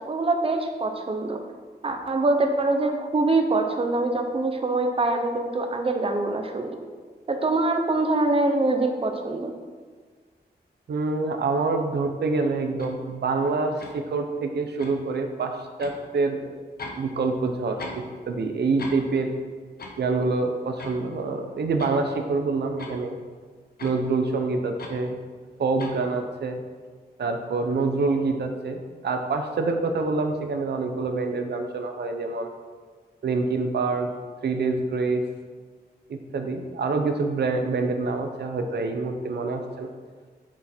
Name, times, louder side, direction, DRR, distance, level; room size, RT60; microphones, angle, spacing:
voice 1, 0.1-1.4 1.8-6.7 7.3-9.5, right 2 dB, 35° right, 4 dB, 0.9 m, -24 dB
voice 2, 10.9-16.6 17.0-19.3 20.0-23.2 23.8-25.2 25.6-26.6 27.2-32.5 33.2-34.1 34.4-35.2 36.1-39.9, right 3 dB, 90° right, 5 dB, 0.9 m, -26 dB
sound 1, 12.8-13.0 13.8-14.0 14.8-15.0 15.8-16.0 16.8-17.1 17.3-18.1 18.4-18.5 18.8-19.1 19.8-20.0 20.8-21.0 21.6-22.0 22.8-23.0 23.8-24.0 24.8-25.0 25.8-26.0, left 3 dB, 70° left, 1.2 m, -39 dB
8.3 x 7.4 x 4.5 m, 1.5 s
wide cardioid pair, 145°, 17 cm